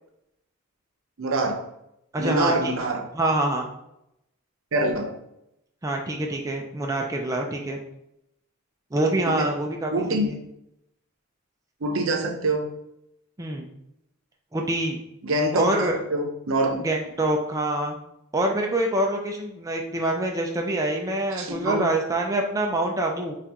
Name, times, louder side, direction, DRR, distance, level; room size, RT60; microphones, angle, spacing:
voice 1, 1.2-1.7 2.2-3.1 4.7-5.2 9.3-9.5 9.9-10.3 11.8-12.7 15.2-16.8 21.4-21.9, right 2 dB, 70° right, 3 dB, 0.7 m, -25 dB
voice 2, 2.1-2.7 3.1-3.7 5.8-7.8 8.9-10.4 13.4-13.7 14.5-15.0 15.5-16.0 16.8-18.0 18.3-23.4, right 1 dB, 15° right, 1 dB, 0.4 m, -25 dB
5.4 x 2.4 x 2.9 m, 0.82 s
head